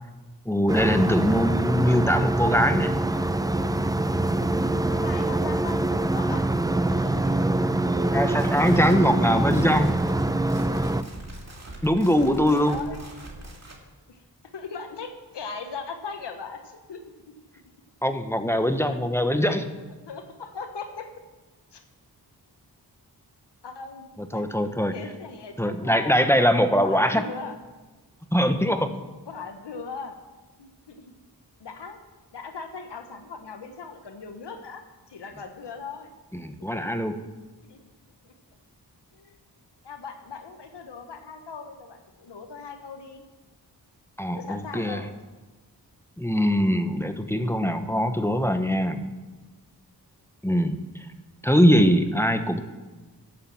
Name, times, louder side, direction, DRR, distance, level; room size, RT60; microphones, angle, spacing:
voice 1, 0.5-2.9 8.1-9.9 11.8-12.8 18.0-19.7 24.3-24.9 25.6-27.2 28.3-28.9 36.3-37.2 44.2-45.0 46.2-49.1 50.4-50.8 51.4-52.6, equal, 5° left, 8 dB, 1.0 m, -22 dB
sound 1, 0.7-11.0, right 2 dB, 10° right, 0.5 m, -24 dB
voice 2, 4.9-6.5 6.9-7.4 8.9-9.6 12.2-13.0 14.1-14.2 14.5-17.0 17.3-17.4 20.1-21.1 21.7-21.8 23.6-24.5 24.9-26.2 26.8-27.5 28.6-28.7 29.3-30.1 30.6-31.0 31.6-32.0 32.3-36.1 36.7-36.9 37.6-37.8 38.2-38.3 39.1-39.4 39.8-43.2 44.3-45.1, left 4 dB, 85° left, 6 dB, 1.2 m, -39 dB
sound 2, 8.3-13.8, right 1 dB, 40° right, 2.4 m, -43 dB
11.5 x 7.5 x 7.3 m, 1.2 s
cardioid pair, 45°, 41 cm